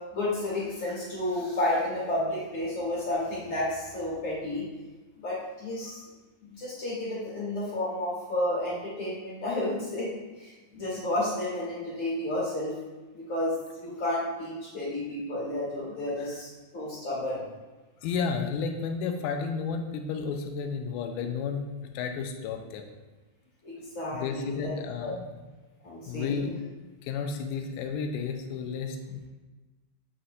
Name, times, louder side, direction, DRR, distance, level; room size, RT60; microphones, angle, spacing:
voice 1, 0.1-4.6 5.2-5.9 6.4-10.1 10.4-12.7 13.1-16.5 16.7-17.4 23.6-24.7 25.0-25.1 25.8-26.5, left 1 dB, 40° left, -7 dB, 2.1 m, -31 dB
voice 2, 18.0-21.7 21.9-22.9 24.1-25.4 26.1-26.5 27.0-29.3, left 5 dB, 85° left, 5 dB, 2.4 m, -32 dB
7.8 x 5.7 x 2.5 m, 1.2 s
omnidirectional pair, 4.3 m